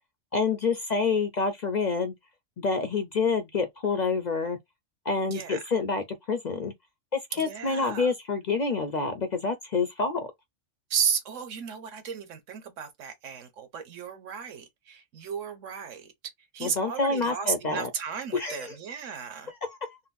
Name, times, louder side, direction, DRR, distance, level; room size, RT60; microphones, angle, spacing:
voice 1, 0.3-2.1 2.6-4.6 5.1-6.7 7.1-10.2 16.6-17.9 18.3-18.7 19.6-20.0, left 4 dB, 50° left, 0.5 m, -27 dB
voice 2, 5.3-5.6 7.4-8.1 10.9-16.1 16.5-19.5, right 7 dB, 85° right, 1.2 m, -34 dB
3.8 x 2.0 x 2.3 m
omnidirectional pair, 1.3 m